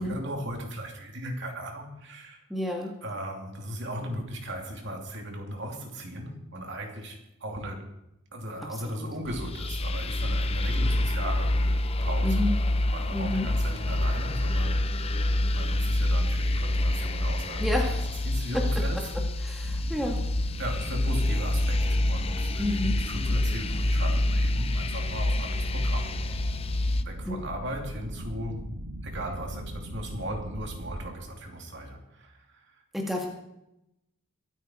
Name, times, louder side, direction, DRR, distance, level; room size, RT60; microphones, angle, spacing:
voice 1, 0.0-2.4 3.0-7.9 8.3-11.6 12.0-12.4 12.9-17.8 18.2-19.1 20.6-26.1 26.7-28.7 29.0-32.8, right 1 dB, 55° right, 2 dB, 2.8 m, -37 dB
voice 2, 2.5-2.9 8.9-9.1 12.2-12.5 13.1-13.5 17.6-17.9 18.5-18.6 19.4-20.2 22.6-22.9 27.3-27.4 32.9-33.3, left 1 dB, ahead, -1 dB, 1.9 m, -29 dB
sound 1, 9.3-27.0, left 1 dB, 25° left, 0.6 m, -27 dB
sound 2, 19.6-31.2, equal, 85° right, 1.7 m, -39 dB
23.0 x 9.2 x 4.5 m, 0.86 s
head